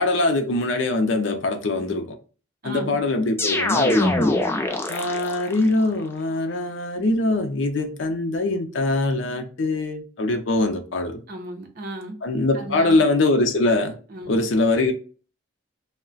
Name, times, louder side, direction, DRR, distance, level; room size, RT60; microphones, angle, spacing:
voice 1, 0.0-2.2 2.6-4.4 4.9-11.2 12.2-14.0 14.3-14.9, left 2 dB, 80° left, 0.5 m, -23 dB
voice 2, 2.6-3.0 4.5-4.8 11.3-12.2 12.5-13.0 14.1-14.5, right 1 dB, 50° right, 0.7 m, -36 dB
sound 1, 3.4-5.6, left 2 dB, 15° left, 0.3 m, -23 dB
2.3 x 2.1 x 3.7 m
head